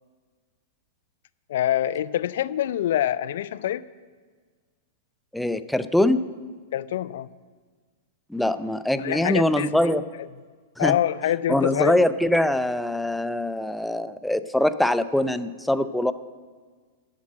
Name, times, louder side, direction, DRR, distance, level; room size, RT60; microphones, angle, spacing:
voice 1, 1.5-3.9 6.7-7.3 9.0-10.0 10.8-12.0, left 11 dB, 70° left, 17 dB, 0.4 m, -25 dB
voice 2, 5.3-6.2 8.3-10.0 10.8-11.0 11.5-16.1, left 1 dB, 5° left, 13 dB, 0.5 m, -23 dB
12.5 x 7.4 x 7.5 m, 1.5 s
hypercardioid pair, 125°, 0 cm